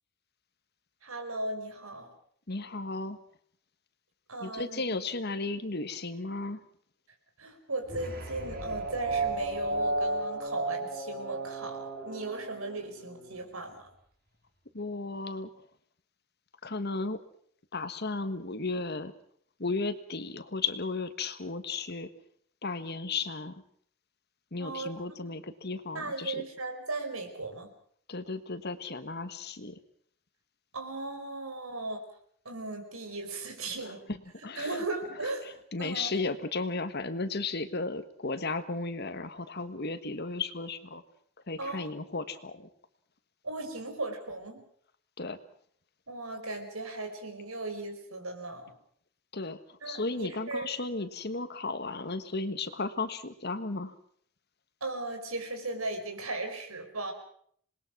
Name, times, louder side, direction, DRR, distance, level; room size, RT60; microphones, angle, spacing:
voice 1, 1.0-2.1 4.3-4.8 7.4-13.9 24.6-25.2 25.9-27.7 30.7-32.0 32.5-34.0 34.6-36.2 41.6-41.9 43.4-44.6 46.1-48.7 49.8-50.7 54.8-57.1, right 2 dB, 90° right, 5 dB, 5.1 m, -37 dB
voice 2, 2.5-3.2 4.4-6.6 14.7-15.5 16.6-17.2 17.7-19.1 19.6-22.1 22.6-23.6 24.5-26.4 28.1-29.8 33.8-34.8 35.7-41.0 41.5-42.7 45.2-45.4 49.3-53.9, left 3 dB, 50° left, 10 dB, 1.5 m, -34 dB
sound 1, 7.9-13.4, right 2 dB, 45° right, 6.6 m, -34 dB
27.0 x 20.5 x 6.1 m, 0.63 s
head